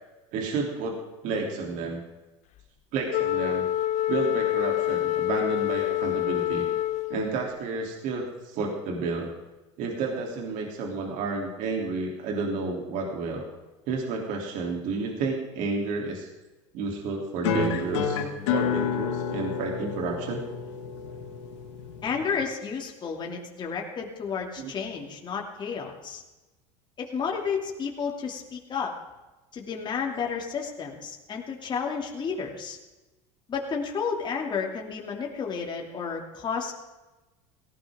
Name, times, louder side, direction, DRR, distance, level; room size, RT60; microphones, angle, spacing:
voice 1, 0.3-1.0 1.2-2.0 2.9-3.7 4.1-6.6 7.1-9.3 9.8-13.4 13.9-16.3 16.7-18.2 18.5-20.4 24.6-24.7, right 4 dB, 60° right, 0 dB, 3.3 m, -31 dB
Wind instrument woodwind instrument, 3.1-7.5, left 14 dB, 50° left, 0.9 m, -27 dB
sound 1, 17.4-22.4, left 7 dB, 90° left, 2.2 m, -30 dB
voice 2, 22.0-26.2 27.0-28.9 29.5-32.8 33.5-36.7, left 6 dB, 30° left, 0 dB, 2.8 m, -31 dB
18.0 x 16.5 x 3.8 m, 1.1 s
supercardioid pair, 115°, 15 cm